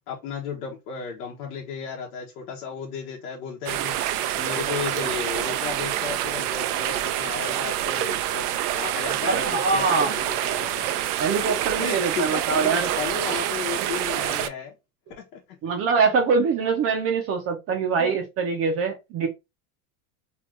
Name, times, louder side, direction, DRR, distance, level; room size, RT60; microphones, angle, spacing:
voice 1, 0.1-10.9 11.8-14.7 15.2-15.4 18.0-18.1, left 6 dB, 75° left, 1.0 m, -34 dB
sound 1, 3.7-14.5, right 12 dB, 90° right, 0.6 m, -27 dB
voice 2, 9.3-10.1 11.2-12.9 15.6-19.3, right 4 dB, 30° right, 0.6 m, -23 dB
3.0 x 2.4 x 3.0 m
supercardioid pair, 145°, 45 cm